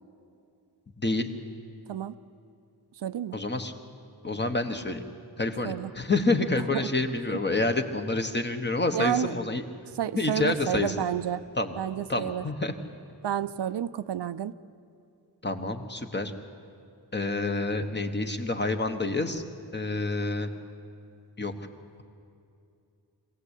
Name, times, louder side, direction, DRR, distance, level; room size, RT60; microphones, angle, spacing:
voice 1, 1.0-1.3 3.3-3.7 4.2-5.0 5.4-9.6 10.1-10.9 11.6-11.8 12.1-12.7 15.4-16.3 17.1-19.4 19.7-20.5 21.4-21.5, left 2 dB, 25° left, 6 dB, 1.2 m, -28 dB
voice 2, 3.0-3.4 5.6-5.9 6.7-6.9 8.9-9.3 10.0-11.4 11.8-12.4 13.2-14.5, right 10 dB, 80° right, 13 dB, 0.7 m, -30 dB
24.5 x 16.5 x 8.3 m, 2.5 s
wide cardioid pair, 155°, 41 cm